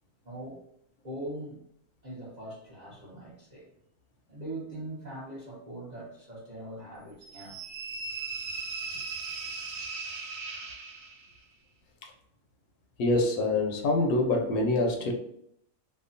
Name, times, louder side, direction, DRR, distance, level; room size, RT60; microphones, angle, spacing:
voice 1, 0.2-0.6 1.0-1.6 2.0-3.7 4.3-7.6, right 1 dB, 40° right, 0.6 m, -41 dB
sound 1, 7.2-11.4, right 4 dB, 70° right, 0.9 m, -38 dB
voice 2, 13.0-15.1, left 2 dB, 75° left, 1.0 m, -25 dB
2.8 x 2.2 x 2.5 m
omnidirectional pair, 1.7 m